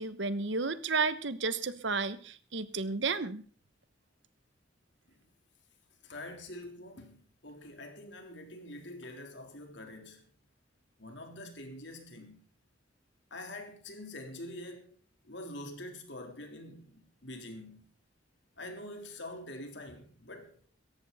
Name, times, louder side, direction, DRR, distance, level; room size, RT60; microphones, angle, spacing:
voice 1, 0.0-3.4, right 4 dB, 65° right, 1.1 m, -32 dB
voice 2, 6.0-10.2 11.0-12.4 13.3-14.9 15.2-17.8 18.6-20.7, left 1 dB, 65° left, 3.7 m, -45 dB
17.5 x 14.5 x 4.2 m
head